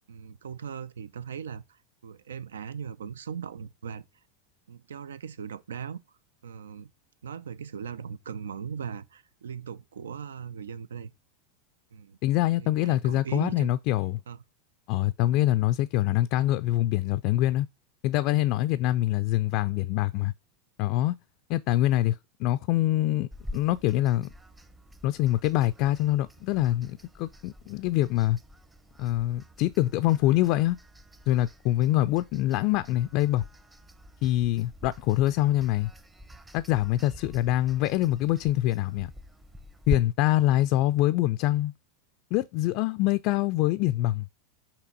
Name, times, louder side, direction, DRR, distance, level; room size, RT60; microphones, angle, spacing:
voice 1, 0.1-4.0 4.7-6.0 6.4-6.9 7.2-11.1 11.9-12.2 12.6-13.7 14.3-14.4, right 7 dB, 85° right, 0.5 m, -39 dB
voice 2, 12.2-14.2 14.9-17.7 18.0-20.3 20.8-21.1 21.5-24.3 25.0-28.4 29.0-30.8 31.3-33.4 34.2-35.9 36.5-39.1 39.9-41.7 42.3-44.3, left 15 dB, 55° left, 0.3 m, -25 dB
sound 1, 23.3-40.0, equal, 10° right, 0.7 m, -44 dB
5.8 x 3.3 x 5.3 m
hypercardioid pair, 100°, 0 cm